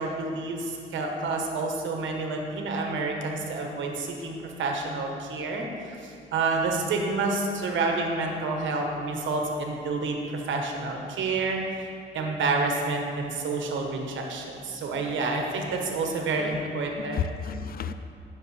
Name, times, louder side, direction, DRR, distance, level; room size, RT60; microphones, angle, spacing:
voice 1, 0.0-11.9 12.1-17.2, right 3 dB, 75° right, 2 dB, 1.2 m, -29 dB
voice 2, 14.9-15.3 16.4-16.7 17.0-17.9, left 7 dB, 50° left, 11 dB, 0.4 m, -34 dB
10.5 x 6.4 x 3.3 m, 2.5 s
cardioid pair, 90°, 20 cm